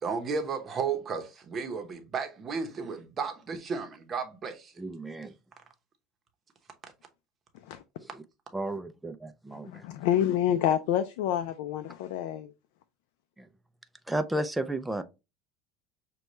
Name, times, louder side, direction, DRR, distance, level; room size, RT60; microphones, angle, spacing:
voice 1, 0.0-4.7, right 5 dB, 25° right, 0.8 m, -33 dB
voice 2, 4.8-5.3 8.0-8.2 8.5-9.8 13.4-13.5 14.1-15.0, right 1 dB, 5° right, 0.4 m, -33 dB
voice 3, 9.6-12.5, left 10 dB, 75° left, 0.4 m, -28 dB
6.3 x 2.2 x 3.0 m
supercardioid pair, 140°, 0 cm